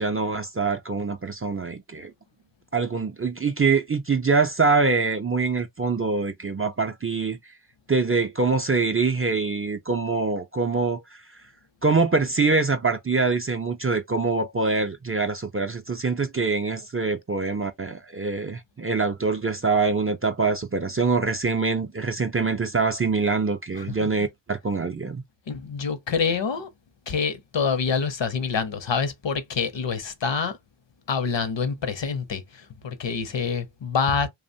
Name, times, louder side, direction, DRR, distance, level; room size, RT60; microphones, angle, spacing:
voice 1, 0.0-2.1 2.7-7.4 7.9-11.2 11.8-25.2, right 4 dB, 30° right, 0.4 m, -24 dB
voice 2, 23.8-24.1 25.5-26.7 27.1-30.6 31.1-34.3, left 5 dB, 65° left, 0.7 m, -26 dB
2.9 x 2.1 x 2.6 m
wide cardioid pair, 65°, 49 cm